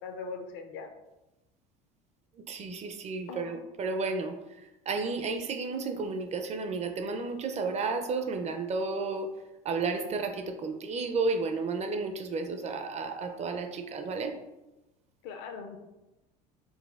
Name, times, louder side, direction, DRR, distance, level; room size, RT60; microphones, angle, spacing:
voice 1, 0.0-0.9 3.3-3.6 15.2-15.8, left 5 dB, 65° left, 5 dB, 0.5 m, -40 dB
voice 2, 2.5-4.3 4.9-9.3 9.7-14.3, right 4 dB, 35° right, 6 dB, 0.5 m, -32 dB
3.9 x 2.3 x 2.3 m, 1.0 s
hypercardioid pair, 85°, 21 cm